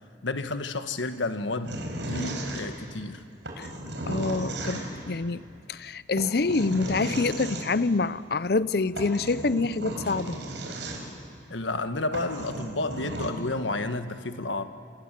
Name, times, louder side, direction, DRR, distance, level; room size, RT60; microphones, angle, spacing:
voice 1, 0.2-1.8 2.1-3.2 11.5-14.6, left 2 dB, 90° left, 1.5 m, -31 dB
sound 1, 1.6-3.0 3.4-5.1 6.2-7.7 8.6-8.7 8.9-11.2 11.8-11.9 12.1-13.3, right 1 dB, 75° right, 5.1 m, -35 dB
voice 2, 4.1-5.4 5.7-10.4, left 3 dB, 55° left, 0.6 m, -26 dB
27.5 x 27.0 x 7.6 m
head